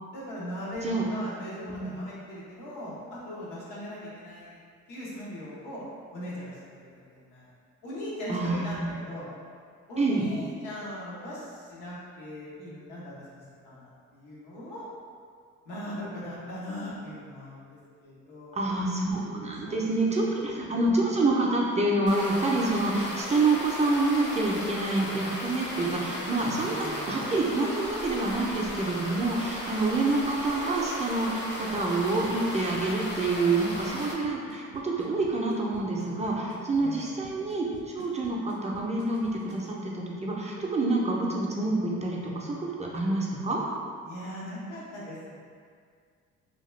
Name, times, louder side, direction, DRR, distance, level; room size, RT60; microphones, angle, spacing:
voice 1, 0.1-4.6 4.9-5.8 6.1-7.5 7.8-9.3 9.9-14.9 15.6-18.7 19.6-20.6 26.8-27.3 36.8-37.2 44.0-45.4, equal, 90° left, -8 dB, 1.0 m, -40 dB
voice 2, 8.3-8.9 10.0-10.3 18.5-43.6, right 2 dB, 25° right, -3 dB, 0.4 m, -27 dB
sound 1, 22.1-34.1, left 1 dB, 35° left, 0.6 m, -36 dB
Drum kit / Snare drum / Bass drum, 31.7-39.7, right 4 dB, 75° right, 0.5 m, -49 dB
2.8 x 2.3 x 3.1 m, 2.1 s
cardioid pair, 90°, 30 cm